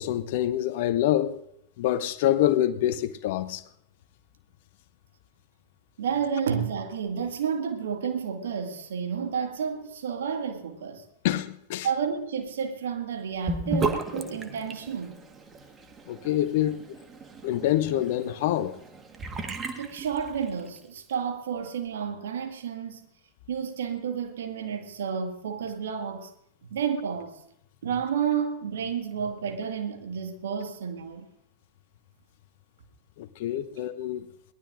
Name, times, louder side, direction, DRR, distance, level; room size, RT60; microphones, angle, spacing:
voice 1, 0.0-1.4 1.8-3.6 11.2-11.9 16.1-16.8 17.4-18.7 33.2-34.2, left 12 dB, 50° left, 0.7 m, -26 dB
voice 2, 6.0-11.0 11.8-15.2 19.8-23.0 23.5-26.3 26.6-27.4 27.8-31.3 33.7-33.8, right 7 dB, 60° right, 1.9 m, -31 dB
Sink (filling or washing) / Bathtub (filling or washing), 13.5-20.8, right 3 dB, 20° right, 1.5 m, -35 dB
22.0 x 18.5 x 2.6 m
figure-of-eight pair, 90°, 0 cm